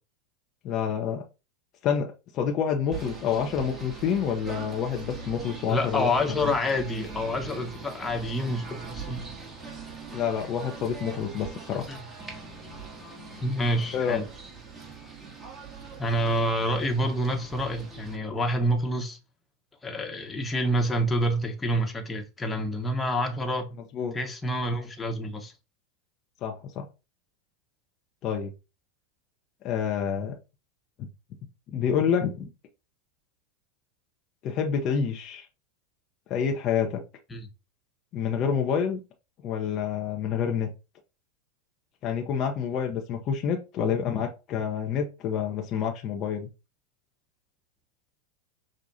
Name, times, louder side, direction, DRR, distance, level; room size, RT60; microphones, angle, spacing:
voice 1, 0.6-1.2 1.8-6.5 10.1-11.9 13.9-14.2 23.9-24.1 26.4-26.9 28.2-28.5 29.6-30.3 31.7-32.5 34.4-35.5 36.3-37.0 38.1-39.0 39.4-40.7 42.0-46.5, left 7 dB, 45° left, 0.8 m, -28 dB
Singing / Bird, 2.9-18.2, right 4 dB, 20° right, 1.5 m, -42 dB
voice 2, 5.7-9.3 11.9-12.0 13.4-14.2 16.0-19.2 19.8-23.8 24.1-25.5 37.3-37.5, equal, 15° left, 1.2 m, -27 dB
6.3 x 2.4 x 2.8 m
hypercardioid pair, 95°, 0 cm